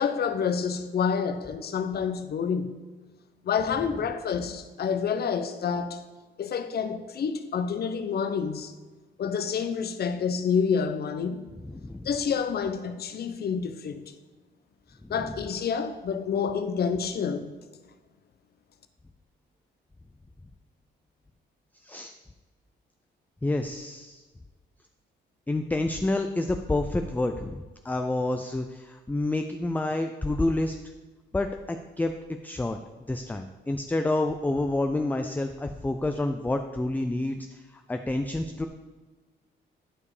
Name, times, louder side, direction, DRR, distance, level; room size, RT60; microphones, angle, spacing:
voice 1, 0.0-2.8 3.4-6.1 6.4-8.7 9.2-11.5 12.0-14.1 15.1-17.5, left 6 dB, 55° left, 0.8 m, -28 dB
voice 2, 11.6-12.1 15.0-15.3 21.8-22.1 23.4-24.2 25.5-30.8 31.3-32.1 32.4-32.8 33.1-38.7, left 2 dB, 10° left, 0.5 m, -29 dB
11.0 x 4.8 x 4.9 m
cardioid pair, 90°, 20 cm